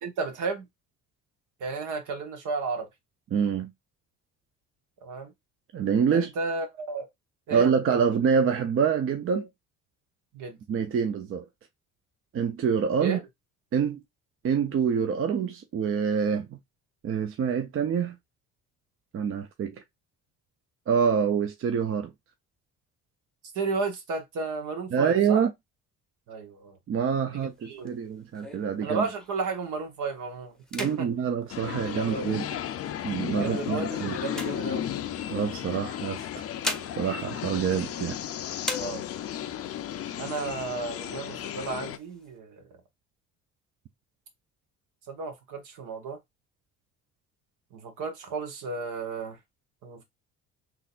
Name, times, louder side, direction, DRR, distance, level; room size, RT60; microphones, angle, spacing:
voice 1, 0.0-0.7 1.6-2.9 5.0-5.3 6.1-7.1 7.5-8.1 10.3-10.6 13.0-13.2 23.5-25.4 26.3-26.8 27.3-28.0 28.8-30.5 30.8-31.1 31.8-32.3 33.4-34.9 38.7-39.0 40.2-42.6 45.1-46.2 47.7-49.4 49.8-50.0, right 4 dB, 70° right, 1.4 m, -33 dB
voice 2, 3.3-3.7 5.7-6.3 7.5-9.5 10.7-11.5 12.3-13.2 13.7-14.0 14.4-16.6 17.0-18.2 19.1-19.8 20.9-22.1 24.9-25.5 26.9-29.1 30.7-32.5 33.0-34.2 35.3-36.3 37.0-38.2, right 7 dB, 45° right, 0.6 m, -26 dB
sound 1, 27.4-29.6 30.0-30.3 30.6-32.5 33.2-35.3 36.2-38.2 38.6-39.5 39.9-40.0 40.3-40.9 41.4-42.3, left 1 dB, ahead, 0.8 m, -39 dB
sound 2, 31.5-42.0, left 10 dB, 45° left, 0.5 m, -34 dB
3.8 x 2.9 x 2.4 m
supercardioid pair, 85°, 32 cm